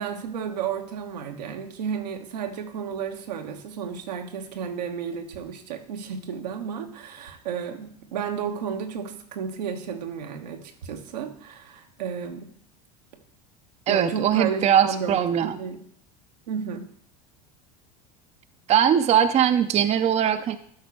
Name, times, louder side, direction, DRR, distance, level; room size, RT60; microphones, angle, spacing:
voice 1, 0.0-12.5 13.9-15.2 15.6-15.8 16.5-16.8, right 7 dB, 85° right, 4 dB, 1.1 m, -32 dB
voice 2, 13.9-15.6 18.7-20.6, right 9 dB, 30° right, 10 dB, 0.6 m, -21 dB
12.0 x 4.0 x 4.6 m, 0.64 s
hypercardioid pair, 90°, 21 cm